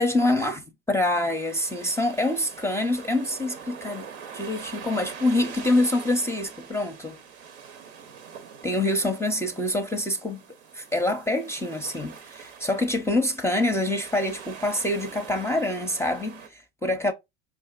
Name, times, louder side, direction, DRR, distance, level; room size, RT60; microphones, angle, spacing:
voice 1, 0.0-4.1 4.3-7.2 8.6-10.4 10.7-17.1, left 1 dB, 10° left, 0.5 m, -26 dB
sound 1, 1.2-16.5, right 7 dB, 85° right, 0.8 m, -43 dB
4.8 x 2.5 x 2.3 m
hypercardioid pair, 80°, 33 cm